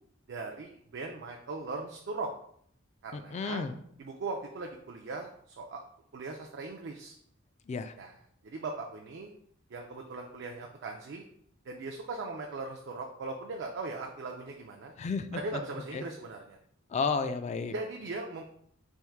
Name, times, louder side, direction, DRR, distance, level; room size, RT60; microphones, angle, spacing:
voice 1, 0.3-2.3 3.0-3.7 4.0-5.8 6.1-7.2 8.0-8.1 8.4-9.3 9.7-11.2 11.6-14.9 15.3-16.6 17.7-18.4, right 3 dB, 55° right, 1 dB, 0.4 m, -39 dB
voice 2, 3.1-3.8 7.7-7.9 15.0-15.6 15.9-16.0 16.9-17.7, left 4 dB, 35° left, 10 dB, 0.3 m, -32 dB
3.5 x 2.6 x 4.4 m, 0.67 s
head